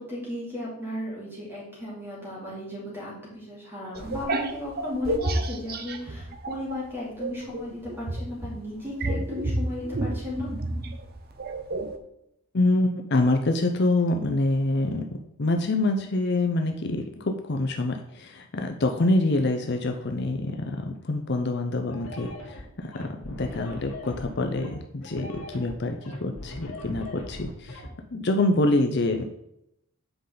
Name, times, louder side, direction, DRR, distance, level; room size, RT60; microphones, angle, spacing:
voice 1, 0.0-10.5, left 1 dB, 10° right, -5 dB, 2.8 m, -35 dB
sound 1, 4.0-6.8 7.2-12.0, right 1 dB, 45° right, 0.7 m, -30 dB
voice 2, 12.5-15.0 15.4-29.2, left 2 dB, 50° left, 4 dB, 0.6 m, -26 dB
sound 2, 21.9-27.9, left 1 dB, 75° left, 2.3 m, -39 dB
8.0 x 5.0 x 3.9 m, 0.81 s
head